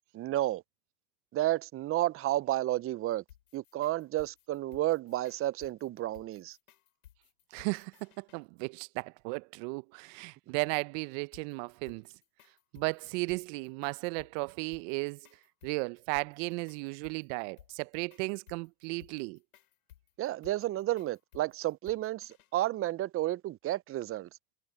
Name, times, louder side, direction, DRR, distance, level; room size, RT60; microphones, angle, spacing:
voice 1, 0.1-0.6 1.3-3.2 3.5-6.6 20.2-24.3, right 15 dB, 35° right, 0.6 m, -31 dB
sound 1, 3.1-8.4 11.3-22.7, left 12 dB, 85° left, 7.3 m, -59 dB
voice 2, 7.5-12.1 12.7-15.2 15.6-19.4, right 29 dB, 60° right, 0.8 m, -35 dB
hypercardioid pair, 95°, 42 cm